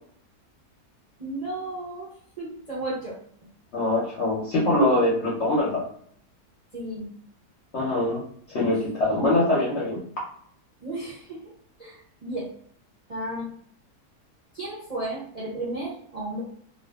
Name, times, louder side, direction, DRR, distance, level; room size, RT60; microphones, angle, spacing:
voice 1, 1.2-2.1 2.4-3.1 6.7-7.1 8.7-8.8 10.8-11.5 11.8-12.5 13.1-13.5 14.5-16.4, right 1 dB, 45° right, -7 dB, 0.4 m, -33 dB
voice 2, 3.7-5.8 7.7-8.2 8.5-10.0, left 1 dB, 60° left, -5 dB, 0.7 m, -23 dB
2.5 x 2.4 x 2.2 m, 0.62 s
omnidirectional pair, 1.7 m